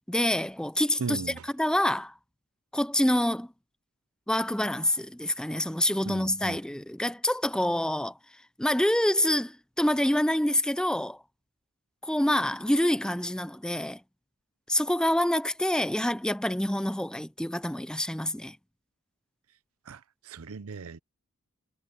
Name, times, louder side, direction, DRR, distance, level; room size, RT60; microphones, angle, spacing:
voice 1, 0.1-1.2 1.6-2.1 2.7-3.5 4.3-8.1 8.6-11.2 12.0-14.0 14.7-18.6, left 1 dB, 5° left, 0.5 m, -26 dB
voice 2, 1.0-1.4 6.0-6.6 19.9-21.0, right 4 dB, 70° right, 0.6 m, -37 dB
head